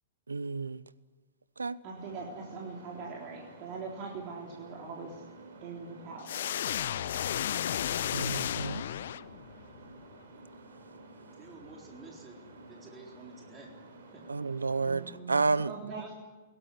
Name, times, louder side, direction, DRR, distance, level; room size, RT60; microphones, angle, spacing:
voice 1, 0.3-0.8 1.6-1.8 8.1-8.8 14.3-15.7, right 4 dB, 80° right, 20 dB, 0.8 m, -30 dB
voice 2, 1.8-5.2 5.6-6.6 14.8-16.1, right 4 dB, 40° right, -1 dB, 3.8 m, -42 dB
sound 1, 1.9-15.2, right 2 dB, 60° right, 4.7 m, -52 dB
sound 2, 6.2-9.6, left 10 dB, 60° left, 0.7 m, -33 dB
voice 3, 11.4-12.4 12.7-13.7 14.1-14.2 15.8-16.1, right 3 dB, 20° right, 0 dB, 4.0 m, -50 dB
21.5 x 18.0 x 9.8 m, 1.3 s
figure-of-eight pair, 105°, 0 cm